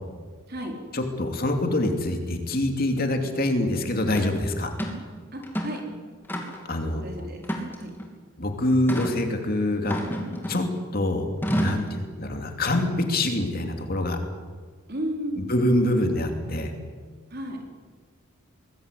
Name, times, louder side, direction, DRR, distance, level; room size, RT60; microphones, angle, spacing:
voice 1, 0.9-4.7 6.7-7.0 8.4-10.0 10.5-10.7 10.9-11.3 11.5-14.2 15.4-16.7, left 1 dB, 45° left, 4 dB, 2.9 m, -25 dB
sound 1, 4.2-4.3 4.8-5.0 5.4-5.8 6.3-6.7 7.4-8.1 8.9-9.2 9.9-10.8 11.4-11.9, equal, 10° left, 3.1 m, -29 dB
voice 2, 5.3-5.9 7.0-7.4 7.8-7.9 14.9-15.5 17.3-17.6, equal, 45° right, 2 dB, 4.6 m, -33 dB
24.5 x 20.5 x 8.4 m, 1.5 s
head